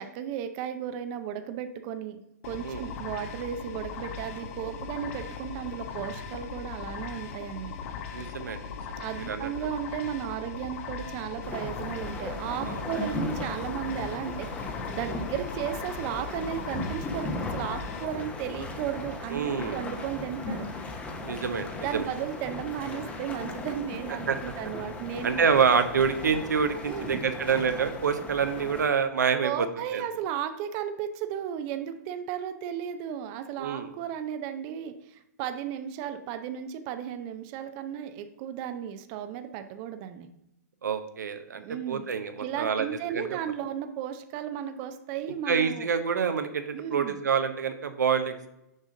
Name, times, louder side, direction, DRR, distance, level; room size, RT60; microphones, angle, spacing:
voice 1, 0.0-7.7 9.0-20.7 21.8-25.3 26.8-27.2 29.4-40.3 41.6-42.0 42.4-45.9 46.7-47.1, right 9 dB, 35° right, 8 dB, 0.5 m, -35 dB
sound 1, 2.4-18.1, left 6 dB, 50° left, 0.7 m, -39 dB
voice 2, 8.1-8.6 8.9-9.5 12.7-12.8 19.3-19.8 21.2-22.1 24.3-24.4 25.2-29.7 29.9-30.0 33.6-33.9 40.8-41.6 41.9-42.9 43.1-43.4 45.5-48.5, right 6 dB, 85° right, 8 dB, 0.7 m, -27 dB
sound 2, 11.4-28.8, left 2 dB, 15° left, 0.8 m, -37 dB
6.4 x 5.0 x 3.7 m, 0.86 s
hypercardioid pair, 125°, 9 cm